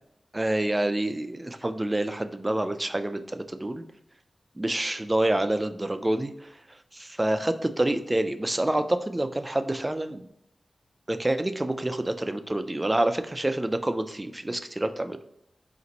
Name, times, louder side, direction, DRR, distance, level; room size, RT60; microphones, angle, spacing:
voice 1, 0.3-3.8 4.6-10.3 11.1-15.2, right 1 dB, 20° right, 9 dB, 0.3 m, -27 dB
4.0 x 2.5 x 4.0 m, 0.75 s
wide cardioid pair, 100°, 0 cm